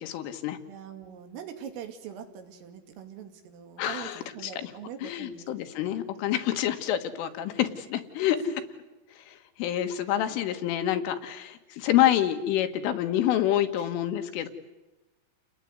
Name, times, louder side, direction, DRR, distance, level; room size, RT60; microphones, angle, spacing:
voice 1, 0.0-0.6 3.8-4.7 5.0-8.4 9.2-14.5, left 12 dB, 80° left, 7 dB, 4.1 m, -27 dB
voice 2, 0.7-5.5 5.8-5.9 8.4-8.5 13.8-13.9, right 8 dB, 90° right, 6 dB, 5.0 m, -42 dB
30.0 x 19.0 x 9.5 m, 1.1 s
omnidirectional pair, 5.7 m